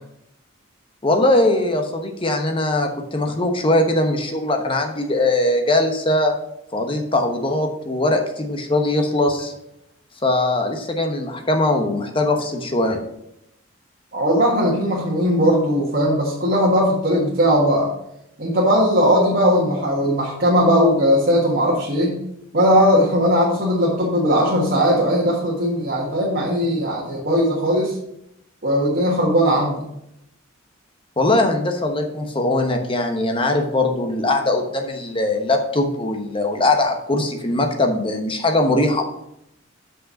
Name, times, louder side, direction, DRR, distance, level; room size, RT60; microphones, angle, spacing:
voice 1, 1.0-6.3 6.7-9.5 10.2-13.0 31.2-39.0, left 2 dB, 25° left, 4 dB, 1.0 m, -20 dB
voice 2, 14.1-17.9 18.4-22.2 22.5-28.0 28.6-29.8, equal, 45° right, -4 dB, 1.5 m, -18 dB
6.4 x 5.4 x 5.6 m, 0.78 s
head